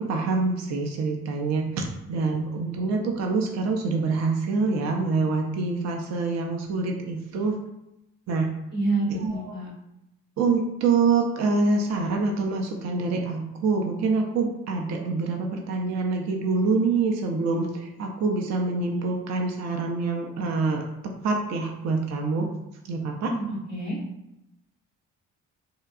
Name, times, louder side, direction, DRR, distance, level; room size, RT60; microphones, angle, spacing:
voice 1, 0.0-7.6 8.3-8.5 9.2-9.5 10.4-20.8 21.2-22.5 22.9-23.3, right 4 dB, 45° right, 2 dB, 0.5 m, -26 dB
voice 2, 8.7-9.7 23.2-24.0, right 2 dB, 85° right, -6 dB, 1.1 m, -28 dB
2.7 x 2.1 x 2.4 m, 0.89 s
hypercardioid pair, 45°, 40 cm